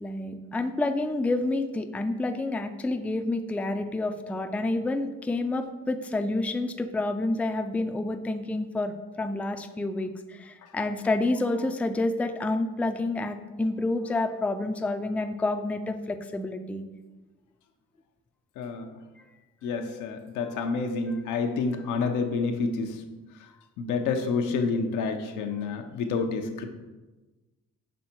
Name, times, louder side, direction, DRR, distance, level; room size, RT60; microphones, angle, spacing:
voice 1, 0.0-16.8, left 2 dB, 5° left, 6 dB, 0.3 m, -29 dB
voice 2, 18.6-18.9 19.6-23.0 23.8-26.7, left 4 dB, 90° left, 5 dB, 0.7 m, -28 dB
6.3 x 3.5 x 4.4 m, 1.2 s
cardioid pair, 90°, 30 cm